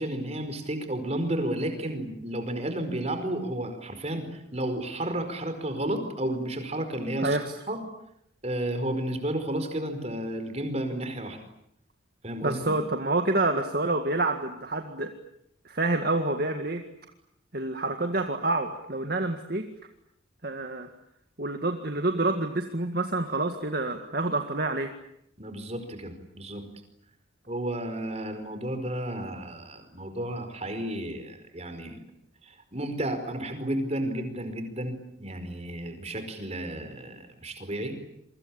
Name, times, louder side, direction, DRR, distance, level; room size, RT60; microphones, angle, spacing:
voice 1, 0.0-7.4 7.7-7.8 8.4-11.4 12.2-12.7 25.4-26.6 27.5-32.0 32.4-37.9, right 1 dB, 30° right, 8 dB, 5.0 m, -32 dB
voice 2, 7.2-7.6 12.4-15.1 15.7-16.8 17.5-19.7 20.4-20.9 21.4-24.9, right 2 dB, 50° right, 6 dB, 1.9 m, -28 dB
28.0 x 24.0 x 8.8 m, 0.77 s
head